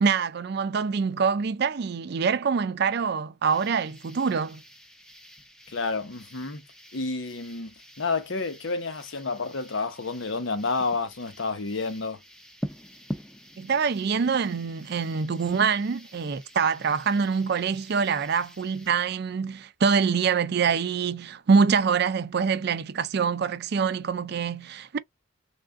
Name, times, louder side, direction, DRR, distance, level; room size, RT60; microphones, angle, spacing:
voice 1, 0.0-4.6 13.6-25.0, right 5 dB, 55° right, 0.4 m, -25 dB
sound 1, 3.5-18.9, equal, 5° left, 0.6 m, -45 dB
voice 2, 5.7-6.6 6.9-7.7 8.0-12.2, left 3 dB, 70° left, 0.8 m, -30 dB
3.5 x 2.4 x 3.5 m
head